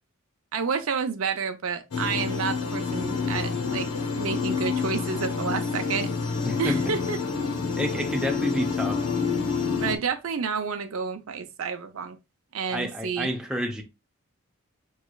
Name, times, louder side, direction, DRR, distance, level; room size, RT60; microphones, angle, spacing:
voice 1, 0.5-3.9 4.1-6.1 6.6-7.2 9.8-12.2 12.5-13.3, right 5 dB, 70° right, 0.6 m, -30 dB
sound 1, 1.9-10.0, left 5 dB, 90° left, 0.8 m, -28 dB
voice 2, 6.4-6.9 7.8-9.0 12.7-13.8, equal, 5° right, 0.6 m, -30 dB
5.4 x 3.2 x 2.3 m
head